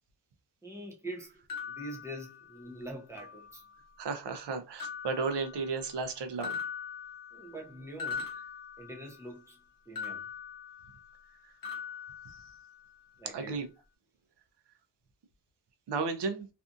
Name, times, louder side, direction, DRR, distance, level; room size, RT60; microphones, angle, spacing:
voice 1, 0.6-3.6 7.3-8.3 8.8-9.6 9.9-10.3 13.2-13.7, right 1 dB, 5° right, 0.6 m, -44 dB
sound 1, 1.5-2.8 3.2-3.9 4.8-6.1 6.4-9.4 10.0-11.3 11.6-13.0, left 6 dB, 55° left, 0.7 m, -42 dB
voice 2, 4.0-6.6 13.3-13.7 15.9-16.5, right 4 dB, 75° right, 0.7 m, -33 dB
2.7 x 2.3 x 2.5 m
wide cardioid pair, 155°, 42 cm